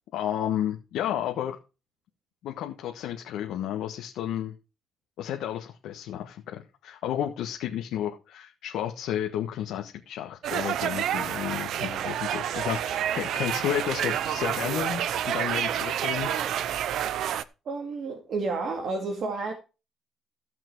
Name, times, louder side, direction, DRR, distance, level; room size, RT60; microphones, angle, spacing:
voice 1, 0.1-1.6 2.4-4.5 5.2-16.4, left 10 dB, 85° left, 1.4 m, -32 dB
sound 1, 10.4-17.4, right 10 dB, 75° right, 0.7 m, -29 dB
voice 2, 17.7-19.5, right 3 dB, 60° right, 2.3 m, -30 dB
15.5 x 6.0 x 4.6 m
cardioid pair, 90°, 0 cm